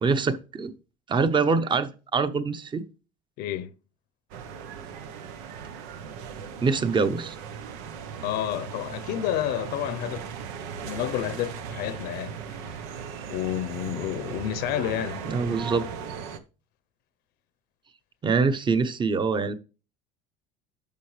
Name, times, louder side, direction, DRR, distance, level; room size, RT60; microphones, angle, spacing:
voice 1, 0.0-0.7 1.1-2.8 6.6-7.4 15.2-15.9 18.2-19.5, right 4 dB, 25° right, 1.0 m, -24 dB
voice 2, 3.4-3.7 8.2-10.3 10.8-12.8 13.3-15.2, left 11 dB, 65° left, 0.9 m, -30 dB
sound 1, 4.3-16.4, right 7 dB, 85° right, 1.1 m, -38 dB
10.5 x 6.5 x 3.3 m
cardioid pair, 120°, 18 cm